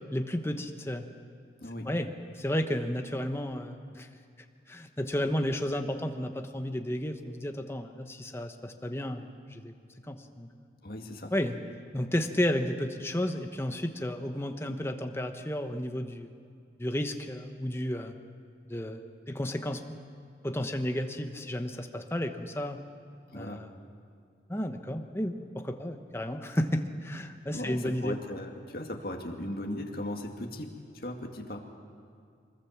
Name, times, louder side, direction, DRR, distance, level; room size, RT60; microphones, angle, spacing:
voice 1, 0.1-1.0 1.8-2.1 2.3-4.1 4.7-9.7 10.1-10.5 11.3-11.6 11.9-16.3 16.8-18.1 18.7-20.0 20.4-22.8 23.3-23.7 24.5-28.2, left 1 dB, 15° left, 6 dB, 1.1 m, -32 dB
voice 2, 10.8-11.3 23.3-23.6 27.5-31.6, left 1 dB, 55° left, 2 dB, 2.3 m, -38 dB
24.5 x 20.0 x 7.5 m, 2.3 s
head